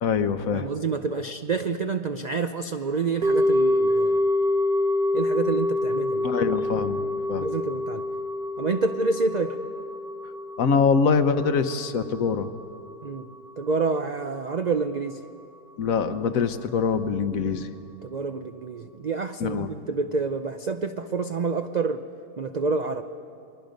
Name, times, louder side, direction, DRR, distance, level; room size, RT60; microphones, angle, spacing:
voice 1, 0.0-0.7 6.2-7.0 7.3-7.5 10.6-12.5 15.8-17.7 19.4-19.7, left 5 dB, 65° left, 10 dB, 1.3 m, -24 dB
voice 2, 0.5-4.2 5.1-6.3 7.3-8.0 8.6-9.6 13.0-13.3 13.6-15.2 18.0-22.0 22.4-23.0, right 4 dB, 65° right, 8 dB, 0.4 m, -28 dB
sound 1, 3.2-13.5 13.8-13.9, left 1 dB, 90° right, 1.9 m, -26 dB
29.0 x 21.5 x 5.2 m, 2.5 s
omnidirectional pair, 1.6 m